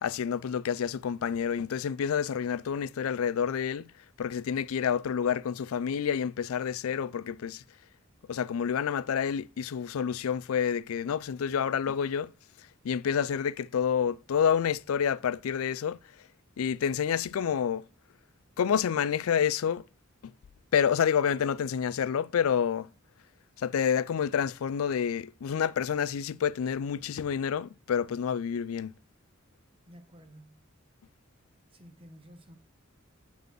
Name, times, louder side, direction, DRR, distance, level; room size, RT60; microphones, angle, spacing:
voice 1, 0.0-3.9 4.2-7.6 8.3-12.3 12.8-16.0 16.6-17.8 18.6-19.8 20.2-20.3 20.7-22.9 23.6-28.9, left 7 dB, 90° left, 0.4 m, -28 dB
voice 2, 29.9-30.7 31.7-32.6, equal, 25° right, 1.2 m, -52 dB
8.2 x 5.1 x 4.5 m
head